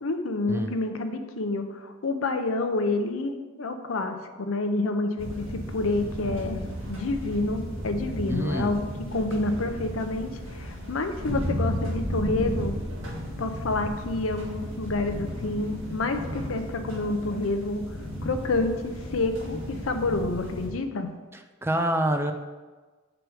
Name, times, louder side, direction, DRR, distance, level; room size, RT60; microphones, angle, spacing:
voice 1, 0.0-5.5 5.7-12.8 13.4-17.8 18.2-18.7 19.1-21.1, left 2 dB, 85° left, 7 dB, 0.7 m, -28 dB
sound 1, 5.2-20.7, equal, 70° right, 1.8 m, -34 dB
voice 2, 8.3-8.7 21.6-22.3, right 1 dB, 10° right, 6 dB, 0.4 m, -26 dB
6.1 x 4.9 x 4.8 m, 1.3 s
head